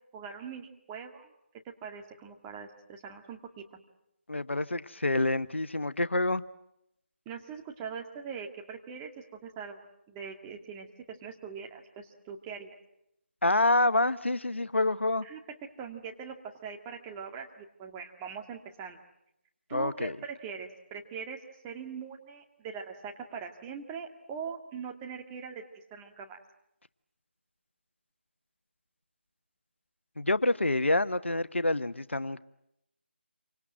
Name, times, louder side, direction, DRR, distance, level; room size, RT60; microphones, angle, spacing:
voice 1, 0.1-1.3 1.6-3.6 7.3-9.8 10.1-12.8 15.2-16.4 16.6-19.0 19.7-21.4 21.6-25.6 25.9-26.4, right 6 dB, 15° right, 2.0 m, -42 dB
voice 2, 4.3-6.4 13.4-15.2 19.7-20.2 30.2-32.4, left 2 dB, 80° left, 1.0 m, -27 dB
28.0 x 25.5 x 7.6 m
figure-of-eight pair, 155°, 6 cm